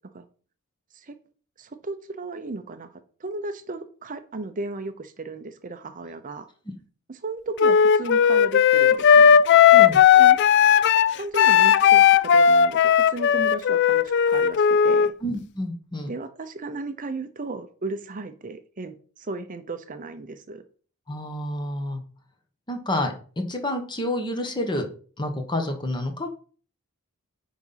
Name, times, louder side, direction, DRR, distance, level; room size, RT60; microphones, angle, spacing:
voice 1, 1.6-6.5 7.1-9.4 10.1-10.4 11.2-15.1 16.1-20.6, right 3 dB, 35° right, 0.7 m, -35 dB
Wind instrument woodwind instrument, 7.6-15.1, left 8 dB, 50° left, 0.3 m, -16 dB
voice 2, 9.7-10.1 15.2-16.1 21.1-22.0 22.7-24.9 25.2-26.3, left 1 dB, 20° left, 1.2 m, -29 dB
9.4 x 4.0 x 5.7 m
head